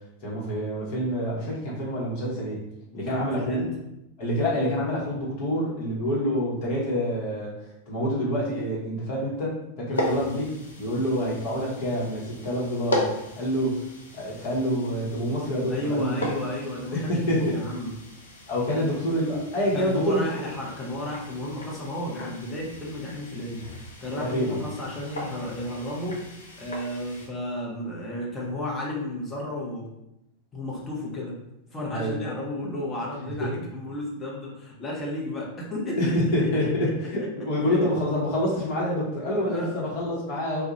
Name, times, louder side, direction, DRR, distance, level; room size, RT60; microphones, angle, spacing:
voice 1, 0.2-2.6 2.9-3.6 4.2-7.5 7.9-10.5 10.8-13.8 14.1-16.2 16.9-17.6 18.5-20.3 24.1-24.7 31.9-32.1 33.4-33.6 36.0-40.6, equal, 50° left, -5 dB, 0.9 m, -27 dB
voice 2, 2.9-3.7 9.9-10.2 15.7-17.9 18.7-18.8 19.7-26.2 26.6-29.9 30.5-31.4 31.7-37.3 37.7-37.9 39.4-39.7, left 1 dB, 20° left, -4 dB, 0.7 m, -33 dB
sound 1, 9.9-27.3, left 1 dB, 70° left, 0.5 m, -37 dB
2.3 x 2.1 x 2.8 m, 0.85 s
figure-of-eight pair, 90°, 0 cm